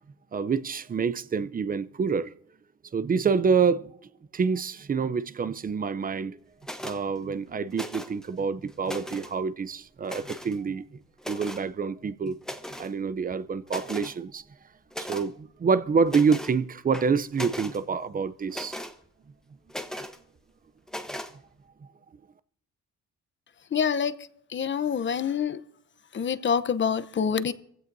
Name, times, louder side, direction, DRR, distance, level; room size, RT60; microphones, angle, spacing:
voice 1, 0.3-2.3 2.9-3.9 4.3-6.4 6.8-10.8 11.3-12.4 12.8-14.4 15.0-18.8, right 5 dB, 30° right, 0.6 m, -27 dB
sound 1, 6.6-7.0 7.7-8.3 8.7-9.3 10.0-10.6 11.2-11.7 12.4-12.9 13.3-13.4 13.7-14.1 14.9-15.3 16.1-16.5 16.9-17.8 18.5-18.9 19.7-20.2 20.9-21.3, equal, ahead, 1.0 m, -37 dB
voice 2, 23.7-25.6 26.1-27.5, left 7 dB, 40° left, 0.8 m, -26 dB
22.5 x 16.0 x 2.7 m
cardioid pair, 90°, 30 cm